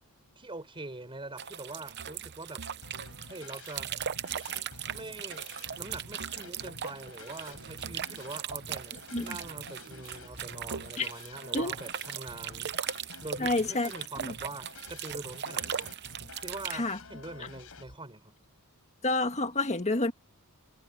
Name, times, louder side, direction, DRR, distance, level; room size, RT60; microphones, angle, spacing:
voice 1, 0.4-2.6 3.3-3.9 4.9-5.5 5.8-12.7 13.2-15.9 16.4-18.4, right 2 dB, 25° right, 5.2 m, -43 dB
sound 1, 1.4-16.8, right 8 dB, 50° right, 0.8 m, -38 dB
sound 2, 2.8-18.0, left 3 dB, 70° left, 4.5 m, -50 dB
voice 2, 13.4-13.9 14.2-14.3 16.7-17.0 19.0-20.1, left 2 dB, 30° left, 1.6 m, -29 dB
head